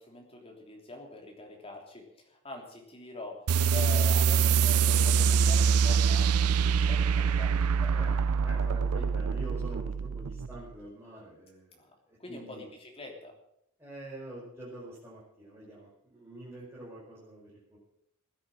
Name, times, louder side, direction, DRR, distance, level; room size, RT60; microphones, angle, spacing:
voice 1, 0.0-7.9 11.8-11.9 12.2-13.4, left 2 dB, 25° left, 1 dB, 3.3 m, -44 dB
sound 1, 3.5-10.6, right 6 dB, 85° right, 0.5 m, -25 dB
voice 2, 7.9-12.6 13.8-17.8, right 1 dB, 10° right, -9 dB, 5.1 m, -46 dB
16.0 x 10.0 x 7.7 m, 0.75 s
head